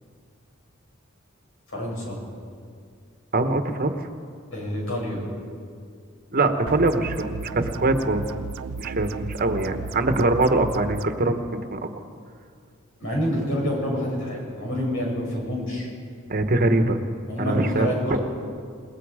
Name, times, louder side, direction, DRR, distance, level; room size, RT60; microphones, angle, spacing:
voice 1, 1.7-2.2 4.5-5.2 13.0-15.9 17.3-18.2, left 1 dB, 70° left, -2 dB, 7.6 m, -27 dB
voice 2, 3.3-4.0 6.3-8.2 8.8-11.4 11.7-11.8 16.3-17.0 17.4-18.2, right 2 dB, 45° right, 7 dB, 1.3 m, -23 dB
sound 1, 6.7-11.1, right 5 dB, 85° right, 0.5 m, -34 dB
27.5 x 19.5 x 5.0 m, 2.2 s
head